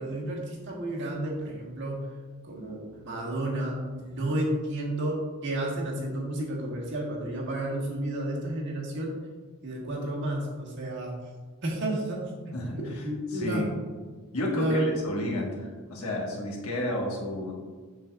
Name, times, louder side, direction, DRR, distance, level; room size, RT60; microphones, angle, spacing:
voice 1, 0.0-2.1 2.4-9.1 9.6-11.1 11.6-13.7 14.5-15.0, right 1 dB, 55° right, -3 dB, 1.4 m, -31 dB
voice 2, 12.5-13.0 13.3-13.6 14.3-17.5, left 1 dB, 70° left, -1 dB, 1.4 m, -31 dB
7.1 x 5.8 x 2.3 m, 1.4 s
head